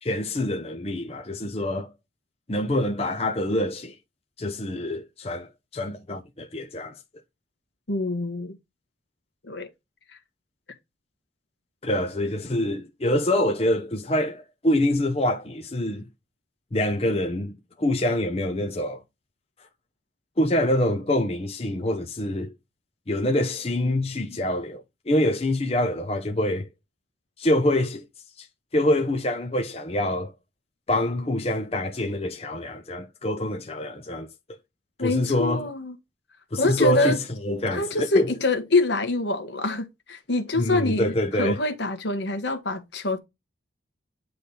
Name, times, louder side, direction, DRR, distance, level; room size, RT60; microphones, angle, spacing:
voice 1, 0.0-1.9 2.5-3.9 4.4-7.0 11.8-16.1 16.7-17.5 17.8-19.0 20.4-22.5 23.1-26.7 27.4-28.0 28.4-28.5 28.7-30.3 30.9-34.3 35.0-35.7 36.5-38.3 40.6-41.6, left 1 dB, 35° left, 0.8 m, -25 dB
voice 2, 7.9-8.5 9.4-9.7 35.0-35.9 36.6-37.2 37.7-43.2, left 2 dB, 70° left, 1.5 m, -25 dB
9.5 x 3.4 x 4.2 m
head